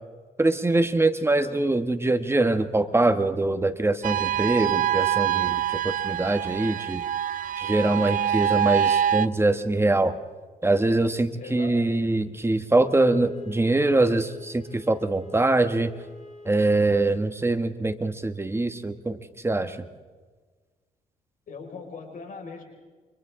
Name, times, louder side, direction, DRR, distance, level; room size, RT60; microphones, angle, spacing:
voice 1, 0.4-7.0 7.6-10.2 10.6-15.9 16.4-19.2 19.4-19.8, right 2 dB, 15° right, 8 dB, 1.3 m, -23 dB
sound 1, 4.0-9.3, right 10 dB, 65° right, 0.6 m, -25 dB
voice 2, 11.4-11.7 21.5-22.6, left 5 dB, 70° left, 3 dB, 5.4 m, -39 dB
Wind instrument woodwind instrument, 12.6-17.1, left 3 dB, 50° left, 4.5 m, -44 dB
29.5 x 25.5 x 3.7 m, 1.4 s
cardioid pair, 90°, 15 cm